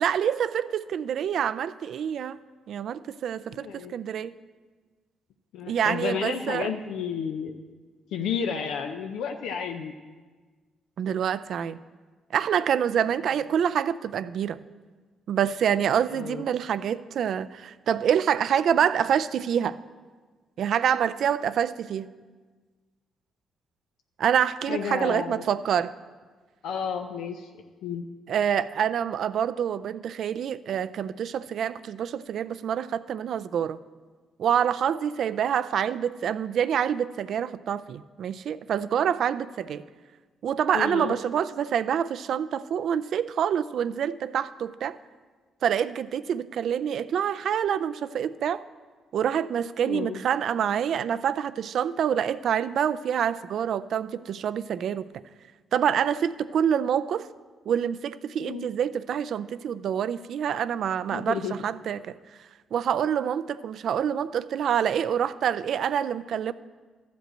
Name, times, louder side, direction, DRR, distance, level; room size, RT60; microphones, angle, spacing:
voice 1, 0.0-2.4 2.7-4.3 5.7-6.7 11.0-11.8 12.3-14.6 15.3-19.8 20.6-22.1 24.2-25.9 28.3-33.8 34.4-39.9 40.4-45.0 45.6-48.6 49.1-55.1 55.7-57.3 57.7-62.2 62.7-66.5, right 8 dB, 65° right, 15 dB, 0.4 m, -26 dB
voice 2, 3.5-3.9 5.5-7.6 8.1-9.9 16.1-16.5 24.7-25.6 26.6-27.5 27.8-28.1 40.7-41.2 49.8-50.2 58.4-58.7 61.1-61.6, left 7 dB, 85° left, 5 dB, 0.5 m, -32 dB
13.0 x 5.2 x 7.7 m, 1.4 s
cardioid pair, 90°, 0 cm